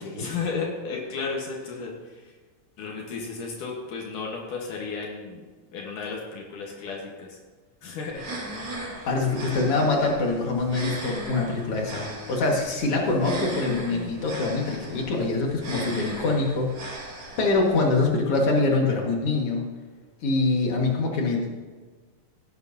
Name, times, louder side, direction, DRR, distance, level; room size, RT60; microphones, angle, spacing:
voice 1, 0.2-2.3 2.8-5.4 5.7-7.4 7.8-8.3, left 4 dB, 70° left, -1 dB, 2.8 m, -33 dB
sound 1, 8.1-18.1, right 1 dB, 45° right, 5.1 m, -38 dB
voice 2, 9.1-16.7 17.4-19.7 20.2-21.5, left 3 dB, 50° left, 0 dB, 2.5 m, -24 dB
17.0 x 9.7 x 2.8 m, 1.4 s
omnidirectional pair, 3.9 m